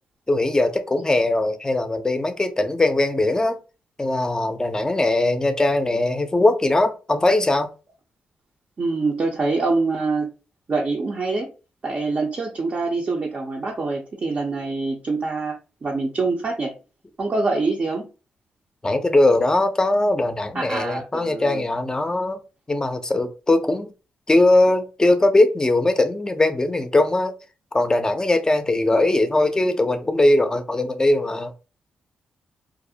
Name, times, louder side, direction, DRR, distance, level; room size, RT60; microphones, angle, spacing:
voice 1, 0.3-3.6 4.0-7.7 18.8-22.4 22.7-23.9 24.3-27.4 27.7-31.5, left 2 dB, 20° left, 0.5 m, -20 dB
voice 2, 8.8-10.3 10.7-11.5 11.8-15.6 15.8-16.7 17.2-18.0 20.5-21.6, right 3 dB, 45° right, 0.5 m, -25 dB
2.4 x 2.0 x 2.7 m
cardioid pair, 60°, 3 cm